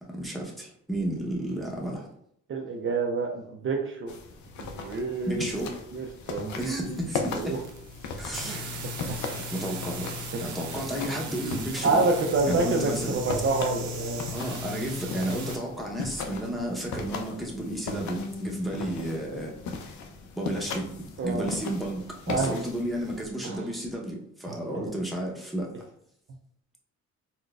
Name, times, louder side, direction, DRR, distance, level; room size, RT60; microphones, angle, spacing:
voice 1, 0.1-2.1 5.3-5.8 6.5-7.6 8.1-8.8 9.3-10.1 10.4-12.0 12.5-13.2 14.3-19.5 20.4-20.9 21.2-25.7, right 1 dB, ahead, -2 dB, 0.8 m, -32 dB
voice 2, 2.5-4.1 4.6-5.4 5.9-7.0 7.3-7.6 8.4-9.2 10.3-10.4 11.8-14.3 21.2-21.4 22.3-22.6 23.4-23.6, right 3 dB, 45° right, 1 dB, 0.5 m, -28 dB
sound 1, 4.1-23.3, left 4 dB, 75° left, 0.6 m, -38 dB
sound 2, 6.5-15.6, left 1 dB, 80° right, 0.8 m, -38 dB
Guitar, 18.2-21.2, left 2 dB, 50° left, 1.0 m, -43 dB
3.9 x 2.2 x 2.3 m, 0.68 s
cardioid pair, 90°, 30 cm